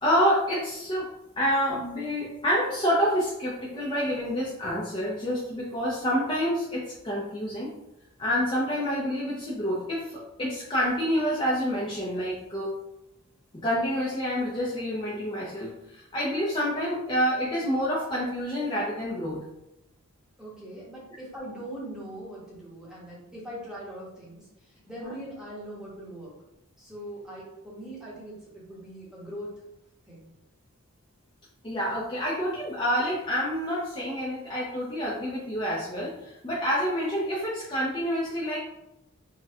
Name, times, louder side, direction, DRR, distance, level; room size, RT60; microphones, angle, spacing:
voice 1, 0.0-1.1 1.4-7.7 8.2-12.7 13.5-19.4 25.0-25.1 31.6-38.6, equal, 20° left, -6 dB, 0.4 m, -28 dB
voice 2, 20.4-26.3 26.8-29.5 30.1-30.3, right 1 dB, 5° right, -7 dB, 0.8 m, -41 dB
4.1 x 2.2 x 2.3 m, 0.89 s
head